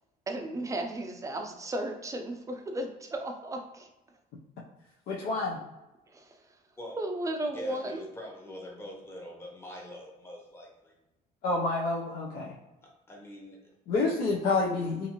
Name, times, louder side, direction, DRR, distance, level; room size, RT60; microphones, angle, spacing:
voice 1, 0.3-3.9 6.1-6.3 7.0-8.1, right 1 dB, 20° right, 4 dB, 0.4 m, -34 dB
voice 2, 5.1-5.6 11.4-12.5 13.9-15.1, left 3 dB, 70° left, -3 dB, 0.6 m, -28 dB
voice 3, 7.5-11.0 12.8-13.7, left 1 dB, 15° left, -1 dB, 0.8 m, -44 dB
2.5 x 2.5 x 2.9 m, 0.97 s
cardioid pair, 110°, 17 cm